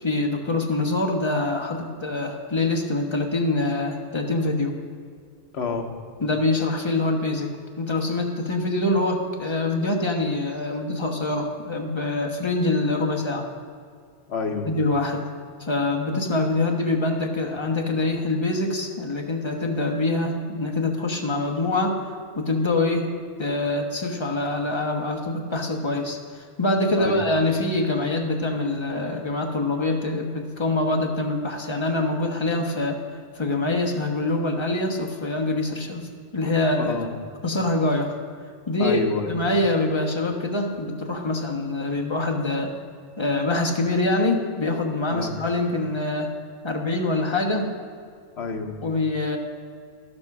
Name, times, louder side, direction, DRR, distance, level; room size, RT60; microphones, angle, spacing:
voice 1, 0.0-4.7 6.2-7.5 7.8-13.5 14.6-15.2 15.6-22.0 22.4-23.1 23.4-33.0 33.3-36.9 37.4-38.2 38.7-42.7 43.2-46.3 46.6-47.7 48.8-49.4, left 2 dB, 25° left, 2 dB, 1.1 m, -25 dB
voice 2, 5.5-5.9 14.3-14.7 27.0-27.2 36.8-37.1 38.8-39.3 45.1-45.3 48.4-48.8, left 4 dB, 65° left, 4 dB, 1.3 m, -28 dB
12.0 x 7.6 x 6.0 m, 2.2 s
omnidirectional pair, 1.2 m